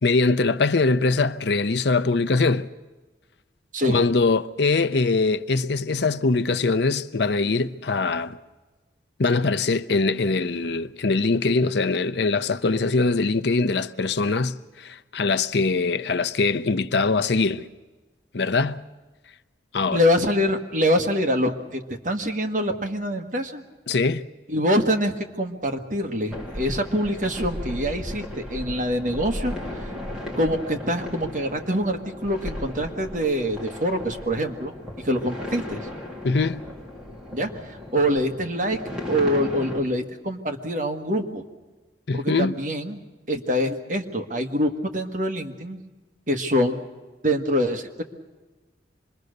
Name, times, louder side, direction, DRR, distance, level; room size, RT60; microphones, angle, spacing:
voice 1, 0.0-2.7 3.8-8.4 9.2-17.7 18.3-18.8 19.7-20.0 23.9-24.2 36.2-36.6 42.1-42.5, left 3 dB, 70° left, 0.7 m, -22 dB
voice 2, 19.9-23.6 24.5-29.9 30.4-34.7 35.0-35.9 37.3-37.5 37.9-38.8 39.1-41.4 42.1-43.0 43.3-45.8 46.3-46.8 47.2-48.0, equal, 45° right, 1.7 m, -25 dB
sound 1, 26.3-39.8, left 1 dB, 5° right, 2.7 m, -36 dB
26.0 x 21.5 x 6.6 m
head